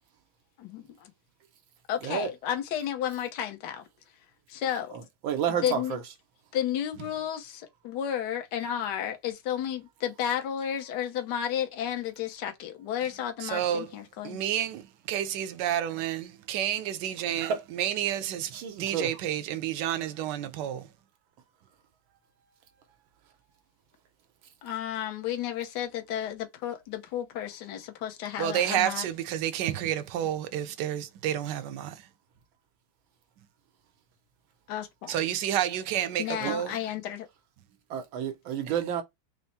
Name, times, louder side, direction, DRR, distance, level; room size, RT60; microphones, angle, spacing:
voice 1, 0.6-1.1 1.9-3.8 4.5-4.9 5.6-6.0 6.5-14.4 24.6-29.0 34.7-35.1 36.2-37.3, left 10 dB, 65° left, 1.3 m, -32 dB
voice 2, 4.9-6.0 17.4-17.6 18.5-19.1 36.4-36.5 37.9-39.0, right 8 dB, 85° right, 1.6 m, -30 dB
voice 3, 13.4-13.9 14.2-18.5 18.8-20.9 28.4-32.0 35.1-36.7 38.7-38.8, right 11 dB, 70° right, 1.2 m, -30 dB
4.4 x 2.0 x 4.1 m
omnidirectional pair, 2.1 m